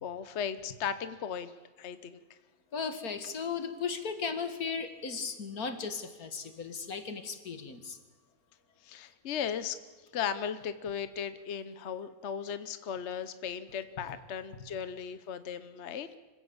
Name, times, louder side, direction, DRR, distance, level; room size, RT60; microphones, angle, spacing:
voice 1, 0.0-1.5 1.8-2.2 8.8-9.8 10.1-16.1, left 7 dB, 55° left, 12 dB, 1.1 m, -36 dB
voice 2, 2.7-8.0, left 5 dB, 85° left, 9 dB, 2.4 m, -36 dB
25.5 x 16.0 x 8.7 m, 1.3 s
omnidirectional pair, 1.5 m